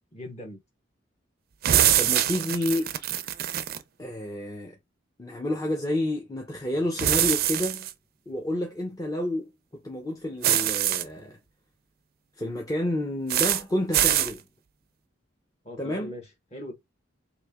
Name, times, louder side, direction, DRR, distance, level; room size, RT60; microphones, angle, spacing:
voice 1, 0.1-0.6 15.6-16.7, left 1 dB, 35° left, 1.2 m, -40 dB
sound 1, 1.6-3.8 7.0-7.9 10.4-11.0 13.3-13.6 13.9-14.3, right 11 dB, 50° right, 0.4 m, -23 dB
voice 2, 2.0-2.9 4.0-4.7 5.2-7.9 8.3-9.5 9.8-11.4 12.4-14.4 15.8-16.1, left 1 dB, 20° left, 0.6 m, -29 dB
3.1 x 2.8 x 3.5 m
head